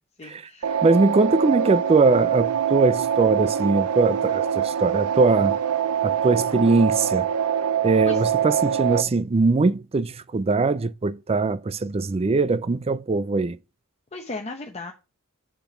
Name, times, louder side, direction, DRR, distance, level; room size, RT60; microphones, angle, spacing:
voice 1, 0.2-0.8 8.0-8.2 14.1-14.9, left 3 dB, 30° left, 0.8 m, -36 dB
sound 1, 0.6-9.0, right 8 dB, 90° right, 0.7 m, -24 dB
voice 2, 0.8-5.6 6.0-7.3 7.8-13.6, right 3 dB, 25° right, 0.4 m, -21 dB
6.9 x 5.9 x 6.0 m
head